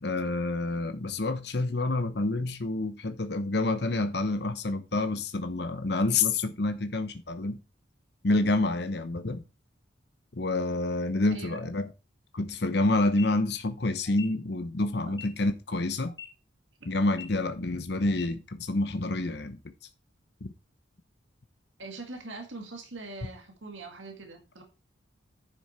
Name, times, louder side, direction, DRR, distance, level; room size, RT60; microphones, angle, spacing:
voice 1, 0.0-7.6 8.2-9.4 10.3-11.9 12.3-16.1 16.9-19.6 20.4-20.5, left 2 dB, 60° left, 0.9 m, -28 dB
voice 2, 11.3-11.7 15.0-15.1 16.8-17.1 21.8-24.6, right 3 dB, 85° right, 2.1 m, -42 dB
sound 1, 13.1-13.3 14.1-14.3 15.1-15.3 16.1-16.3 17.1-17.3 18.1-18.3, left 7 dB, 25° left, 2.7 m, -43 dB
10.0 x 6.3 x 4.4 m
head